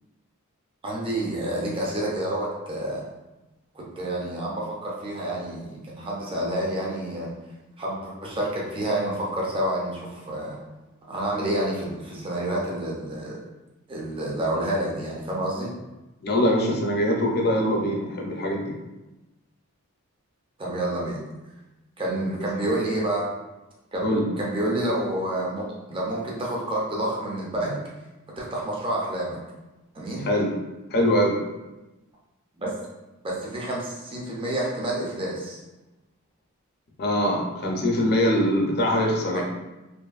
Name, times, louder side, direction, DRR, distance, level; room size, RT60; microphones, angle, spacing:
voice 1, 0.8-3.0 3.7-7.3 7.8-10.6 11.1-13.4 13.9-15.7 20.6-21.2 22.0-23.3 23.9-24.0 24.4-27.8 28.4-29.4 29.9-30.3 32.6-32.7 33.2-35.6 39.3-39.4, right 1 dB, 25° right, -4 dB, 0.5 m, -28 dB
voice 2, 16.2-18.7 24.0-24.2 30.2-30.5 30.9-31.4 37.0-39.4, equal, 45° left, 0 dB, 0.5 m, -23 dB
2.5 x 2.5 x 2.3 m, 1.0 s
head